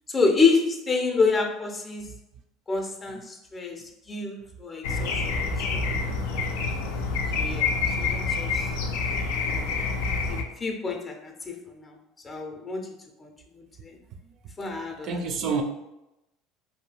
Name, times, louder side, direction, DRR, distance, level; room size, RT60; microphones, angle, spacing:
voice 1, 0.1-2.1 2.7-6.2 7.3-7.7 8.0-8.7 9.4-9.7 10.3-12.0 12.2-12.9 13.2-14.0 14.6-15.4, left 4 dB, 25° left, 3 dB, 0.5 m, -28 dB
sound 1, 4.8-10.4, left 4 dB, 85° left, 0.4 m, -27 dB
voice 2, 15.0-15.6, right 5 dB, 55° right, 5 dB, 0.4 m, -29 dB
2.7 x 2.3 x 3.2 m, 0.92 s
supercardioid pair, 100°, 0 cm